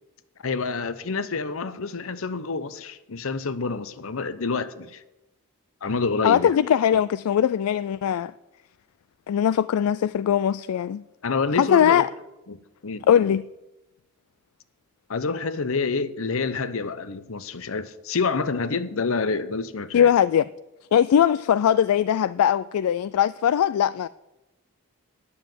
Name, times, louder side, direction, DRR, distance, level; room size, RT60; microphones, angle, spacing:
voice 1, 0.4-5.0 5.8-6.6 11.2-12.1 12.5-13.4 15.1-20.1, left 4 dB, 65° left, 0.8 m, -28 dB
voice 2, 6.2-8.3 9.3-11.0 11.6-12.1 13.1-13.4 19.9-20.5 20.9-24.1, left 9 dB, 80° left, 0.3 m, -20 dB
9.7 x 7.1 x 9.2 m
head